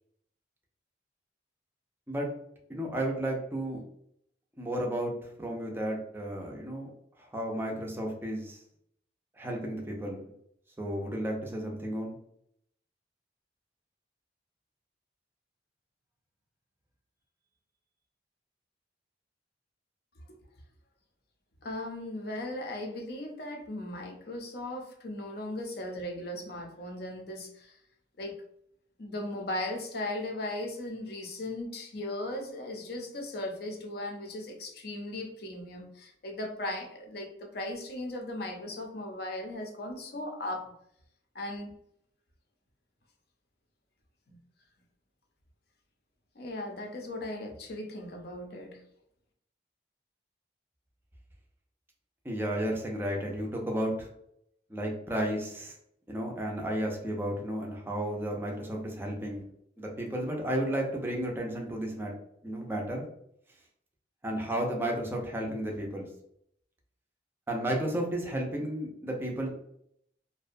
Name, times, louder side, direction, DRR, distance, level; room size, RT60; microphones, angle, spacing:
voice 1, 2.7-3.8 4.6-6.9 7.2-8.6 9.3-10.2 10.8-12.1 52.2-54.1 54.7-55.8 56.1-59.4 59.8-62.1 62.4-63.1 64.2-66.1 67.5-69.5, right 1 dB, 10° right, 0 dB, 0.4 m, -33 dB
voice 2, 21.6-27.7 28.2-28.4 29.0-40.7 41.3-41.7 44.3-44.4 46.4-48.8, left 1 dB, 55° left, 3 dB, 0.5 m, -37 dB
2.6 x 2.1 x 2.5 m, 0.72 s
head